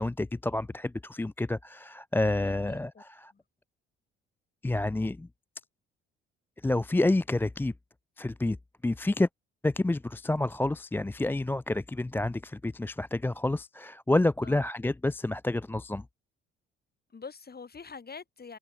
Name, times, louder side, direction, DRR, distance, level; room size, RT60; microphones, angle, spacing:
voice 1, 0.0-3.3 4.6-5.3 6.6-7.7 8.2-8.6 8.8-9.3 9.6-16.0, left 2 dB, 5° left, 0.5 m, -29 dB
voice 2, 2.5-3.0 3.3-3.4 14.4-14.6 17.1-18.6, left 5 dB, 30° left, 3.5 m, -45 dB
figure-of-eight pair, 45°, 32 cm